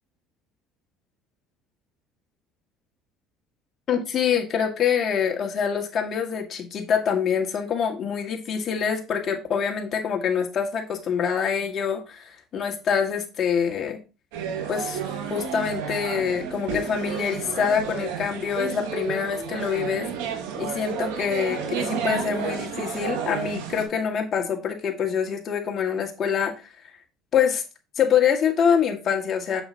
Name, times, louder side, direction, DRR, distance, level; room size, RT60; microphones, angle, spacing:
voice 1, 3.9-14.0 14.7-15.0 15.3-20.1 20.6-26.7 27.3-27.6 28.0-29.6, left 7 dB, 45° left, 2 dB, 2.0 m, -25 dB
sound 1, 14.3-23.9, right 7 dB, 85° right, 1.9 m, -31 dB
7.5 x 6.6 x 2.9 m, 0.30 s
supercardioid pair, 90°, 0 cm